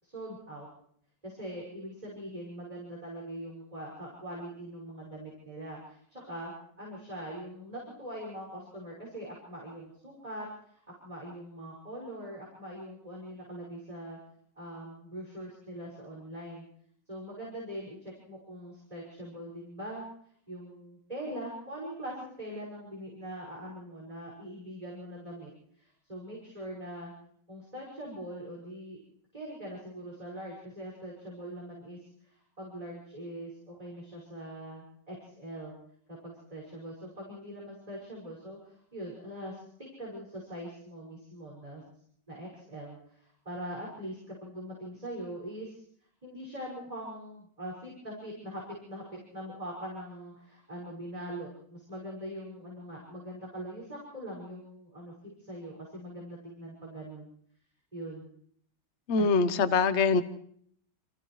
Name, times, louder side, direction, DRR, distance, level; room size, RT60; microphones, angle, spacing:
voice 1, 0.0-0.7 1.2-6.5 6.8-14.2 14.6-16.6 17.1-20.1 20.5-25.5 25.7-27.1 27.5-29.0 29.3-35.7 36.1-39.7 40.0-41.8 42.3-45.8 46.2-55.1 55.5-57.3 57.9-58.3 59.2-59.3, equal, 20° right, -4 dB, 6.0 m, -42 dB
voice 2, 59.1-60.2, left 4 dB, 45° left, 11 dB, 1.1 m, -24 dB
29.5 x 27.5 x 3.2 m, 0.64 s
omnidirectional pair, 1.9 m